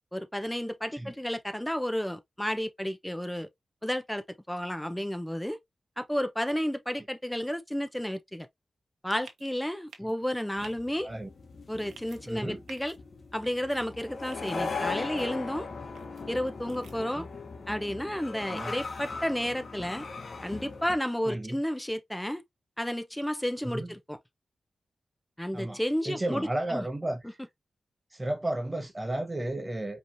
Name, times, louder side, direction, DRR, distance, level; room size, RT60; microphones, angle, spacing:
voice 1, 0.1-3.5 3.8-5.6 6.0-8.5 9.0-11.1 11.7-12.9 13.3-15.7 16.3-17.3 17.7-20.0 20.4-22.4 22.8-24.2 25.4-26.8, equal, 5° left, 0.9 m, -32 dB
sound 1, 9.2-9.5 9.9-10.1 10.6-10.7 11.8-12.2 12.7-13.0 13.4-13.8 14.3-14.5 15.0-15.3 16.0-16.2 16.7-17.0, right 5 dB, 90° right, 1.0 m, -51 dB
sound 2, 10.6-21.0, left 4 dB, 60° left, 1.2 m, -39 dB
voice 2, 12.3-12.6 17.1-17.3 18.5-18.7 21.2-21.6 23.6-23.9 25.5-27.4 28.1-30.0, right 1 dB, 25° right, 1.2 m, -33 dB
5.1 x 3.2 x 2.7 m
cardioid pair, 55°, 0 cm